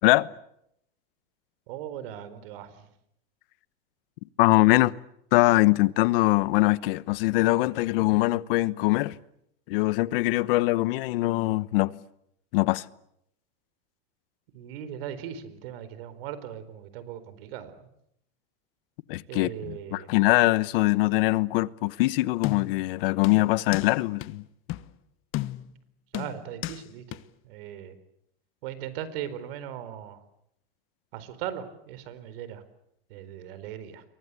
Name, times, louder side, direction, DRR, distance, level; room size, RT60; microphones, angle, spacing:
voice 1, 1.7-2.9 14.5-17.8 19.3-20.1 26.1-27.2 27.4-28.0 28.6-30.2 31.1-32.6 33.1-34.0, right 10 dB, 75° right, 4.4 m, -38 dB
voice 2, 4.4-4.9 5.3-9.2 9.7-12.0 12.5-12.8 19.1-24.4, left 20 dB, 70° left, 1.1 m, -23 dB
sound 1, 22.4-22.9 23.2-23.9 24.2-24.3 24.7-24.9 25.3-25.8 26.1-26.8 27.1-27.2, left 16 dB, 45° left, 1.3 m, -33 dB
30.0 x 23.5 x 8.4 m
supercardioid pair, 135°, 29 cm